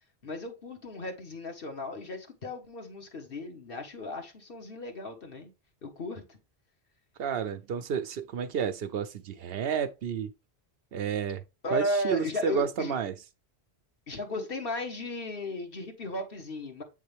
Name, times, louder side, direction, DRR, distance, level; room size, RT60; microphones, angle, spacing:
voice 1, 0.2-5.5 5.8-6.4 11.6-13.0 14.1-16.8, left 1 dB, 60° left, 1.5 m, -35 dB
voice 2, 7.2-10.3 10.9-11.4 11.7-13.1, right 7 dB, 70° right, 0.8 m, -31 dB
8.0 x 3.7 x 3.3 m
omnidirectional pair, 1.1 m